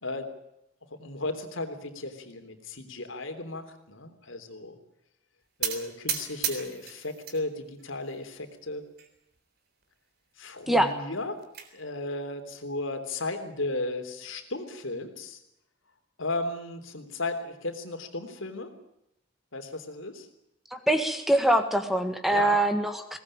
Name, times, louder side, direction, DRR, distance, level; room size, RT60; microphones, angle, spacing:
voice 1, 0.9-4.8 5.6-8.9 10.4-11.4 11.7-15.4 16.2-18.7 19.5-20.3 22.3-22.6, left 2 dB, 75° left, 7 dB, 3.5 m, -35 dB
sound 1, 5.6-7.4 7.8-8.4 9.0-9.1 9.4-9.5 9.8-9.9 11.0-11.7, right 8 dB, 50° right, 3.7 m, -34 dB
voice 2, 20.9-23.2, right 1 dB, ahead, 7 dB, 1.7 m, -23 dB
21.5 x 19.0 x 8.8 m, 0.82 s
head